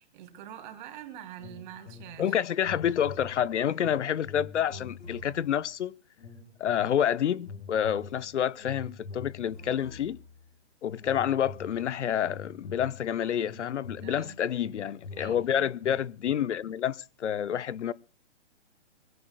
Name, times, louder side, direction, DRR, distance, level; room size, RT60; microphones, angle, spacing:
voice 1, 0.0-2.4 14.0-14.5 15.2-15.7, right 10 dB, 40° right, 3.0 m, -45 dB
sound 1, 1.4-2.3 2.6-5.7 6.2-7.1 7.4-10.5 11.0-16.3, left 4 dB, 60° left, 6.4 m, -45 dB
voice 2, 2.2-5.9 6.6-10.2 10.8-17.9, left 9 dB, 80° left, 0.7 m, -28 dB
24.5 x 16.5 x 2.2 m
hypercardioid pair, 135°, 35 cm